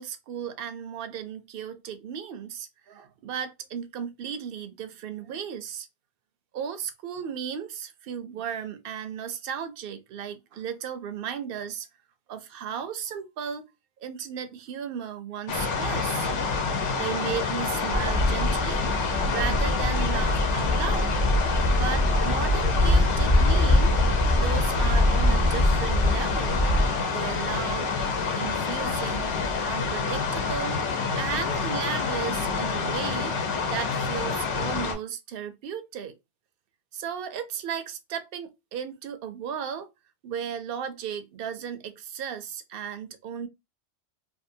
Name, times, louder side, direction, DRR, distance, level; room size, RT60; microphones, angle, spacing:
voice 1, 0.0-5.9 6.5-11.9 12.3-13.7 14.0-16.3 16.9-18.8 19.3-21.1 21.7-24.0 24.3-26.7 27.1-27.9 28.3-29.4 29.6-30.8 31.1-33.4 33.6-36.2 36.9-39.9 40.2-43.5, right 8 dB, 60° right, 0.6 m, -35 dB
sound 1, 15.5-34.9, left 4 dB, 75° left, 1.0 m, -27 dB
Bird vocalization bird call bird song, 17.9-26.9, left 1 dB, 40° left, 0.7 m, -24 dB
2.6 x 2.5 x 2.6 m
omnidirectional pair, 1.2 m